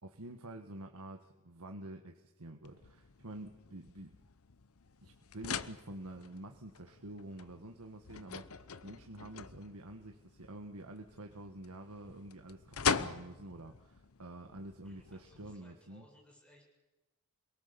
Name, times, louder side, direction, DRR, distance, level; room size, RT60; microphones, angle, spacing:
voice 1, 0.0-4.2 5.0-16.0, right 1 dB, 85° right, 4 dB, 1.6 m, -48 dB
sound 1, 2.6-15.6, left 6 dB, 75° left, 0.9 m, -42 dB
voice 2, 14.8-16.6, left 1 dB, 5° left, -1 dB, 7.7 m, -63 dB
28.5 x 22.0 x 7.0 m, 1.0 s
head